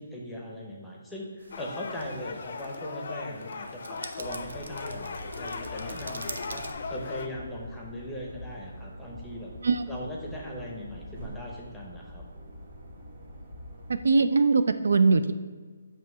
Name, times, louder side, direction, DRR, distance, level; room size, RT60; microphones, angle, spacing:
voice 1, 0.0-6.6 6.9-9.5 9.9-12.2, left 1 dB, 5° left, -3 dB, 0.7 m, -39 dB
sound 1, 1.4-6.7, right 3 dB, 85° right, 0.7 m, -45 dB
sound 2, 1.5-7.3, left 4 dB, 45° left, 0.5 m, -38 dB
sound 3, 4.2-14.1, equal, 30° right, 1.8 m, -45 dB
voice 2, 13.9-15.3, right 4 dB, 70° right, 10 dB, 0.3 m, -21 dB
7.5 x 3.0 x 6.0 m, 1.5 s
hypercardioid pair, 175°, 0 cm